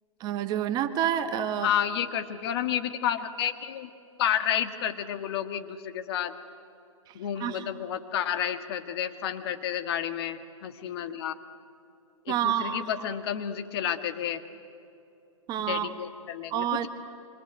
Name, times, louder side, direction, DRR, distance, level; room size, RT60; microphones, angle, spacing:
voice 1, 0.2-1.7 7.4-7.7 12.3-12.9 15.5-15.9 16.5-16.9, right 10 dB, 25° right, 9 dB, 1.3 m, -28 dB
voice 2, 1.6-3.9 4.2-6.3 7.2-11.3 12.3-14.4 15.6-16.9, left 9 dB, 45° left, 9 dB, 1.7 m, -30 dB
26.0 x 25.5 x 8.1 m, 2.6 s
hypercardioid pair, 135°, 18 cm